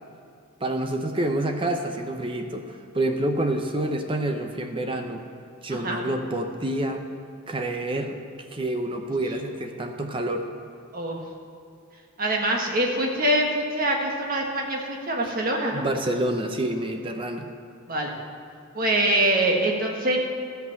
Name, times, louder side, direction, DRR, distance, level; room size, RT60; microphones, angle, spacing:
voice 1, 0.6-5.2 5.6-7.0 7.5-8.2 8.5-10.5 15.3-15.4 15.7-17.5, right 1 dB, 25° right, 5 dB, 0.6 m, -28 dB
voice 2, 12.2-15.8 17.9-18.1 18.7-20.2, right 1 dB, 40° right, 0 dB, 1.4 m, -24 dB
13.0 x 5.7 x 7.5 m, 2.5 s
head